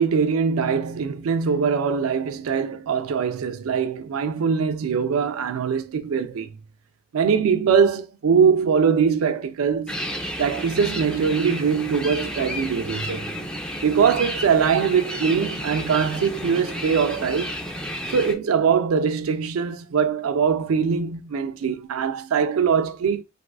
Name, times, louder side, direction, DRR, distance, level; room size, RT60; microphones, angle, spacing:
voice 1, 0.0-6.5 7.1-10.0 10.4-13.3 13.8-17.6 18.1-23.2, right 6 dB, 85° right, 0.4 m, -22 dB
sound 1, 9.9-18.3, equal, 5° left, 0.4 m, -32 dB
3.5 x 2.4 x 2.2 m
head